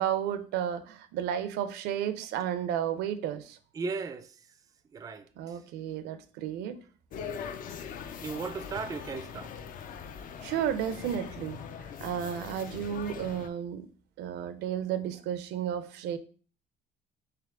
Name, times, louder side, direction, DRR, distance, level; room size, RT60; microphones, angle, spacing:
voice 1, 0.0-3.6 5.4-6.8 10.4-11.6 12.0-13.9 14.2-16.2, right 9 dB, 85° right, 0.5 m, -32 dB
voice 2, 3.7-4.3 4.9-5.3 8.2-9.5, right 4 dB, 20° right, 0.3 m, -36 dB
sound 1, 7.1-13.5, left 7 dB, 55° left, 0.4 m, -41 dB
3.4 x 3.2 x 3.6 m
cardioid pair, 110°, 17 cm